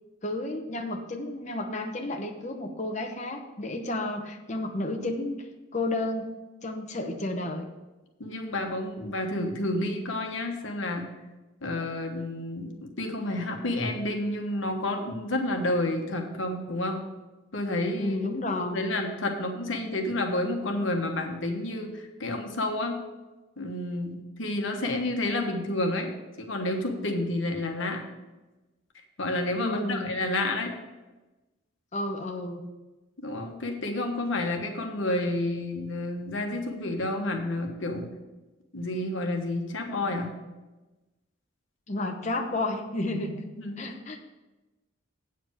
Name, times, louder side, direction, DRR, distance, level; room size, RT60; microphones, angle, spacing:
voice 1, 0.2-5.5 5.7-6.3 6.6-7.7 18.0-18.8 29.6-30.1 31.9-32.6 41.9-43.5 43.8-44.3, left 2 dB, 35° left, 3 dB, 0.8 m, -31 dB
voice 2, 8.2-11.1 11.6-17.0 17.5-18.2 18.7-22.9 23.6-26.1 26.4-28.0 29.2-30.7 33.2-38.1 38.7-40.3 43.1-43.2 43.6-43.8, left 1 dB, 65° left, 3 dB, 1.3 m, -30 dB
8.4 x 5.1 x 7.3 m, 1.1 s
head